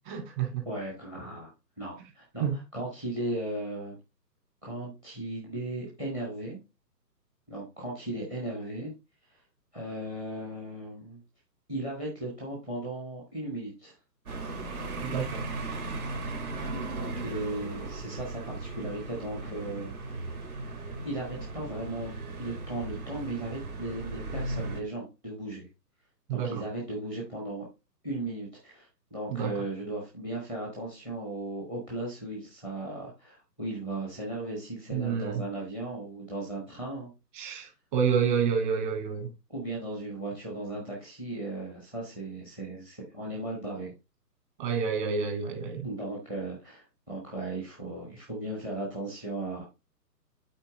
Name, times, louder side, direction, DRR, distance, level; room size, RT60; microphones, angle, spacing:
voice 1, 0.1-0.6 2.4-2.6 15.0-15.4 26.3-26.6 29.3-29.5 34.9-35.4 37.4-39.3 44.6-45.9, right 7 dB, 30° right, 2.2 m, -29 dB
voice 2, 0.7-3.9 4.6-6.6 7.5-8.9 9.3-9.4 9.7-11.2 11.7-14.0 16.9-20.2 21.0-25.7 26.3-27.6 28.0-37.1 39.5-43.9 45.8-49.6, right 1 dB, 10° right, 0.8 m, -36 dB
sound 1, 14.3-24.8, right 3 dB, 60° right, 2.3 m, -37 dB
8.2 x 4.3 x 3.7 m
figure-of-eight pair, 135°, 49 cm